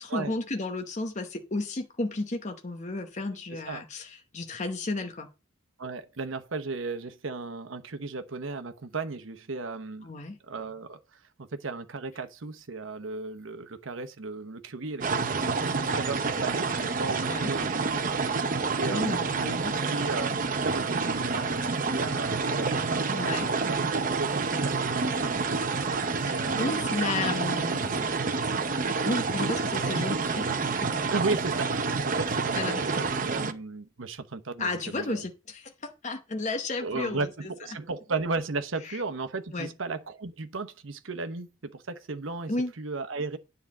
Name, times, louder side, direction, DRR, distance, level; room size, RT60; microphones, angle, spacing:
voice 1, 0.0-5.3 10.0-10.4 17.2-17.5 18.9-19.9 23.1-23.5 26.2-28.1 28.4-28.5 29.0-30.6 32.5-32.8 34.6-37.3 38.8-39.0 39.5-39.7 42.5-42.7, left 2 dB, 35° left, 0.9 m, -33 dB
voice 2, 3.5-3.8 5.8-10.1 10.4-11.0 11.4-18.0 18.8-24.3 24.6-25.6 26.2-26.9 31.1-35.3 36.8-43.4, right 3 dB, 75° right, 0.9 m, -35 dB
sound 1, 15.0-33.5, right 4 dB, 40° right, 0.7 m, -28 dB
9.8 x 3.9 x 7.2 m
head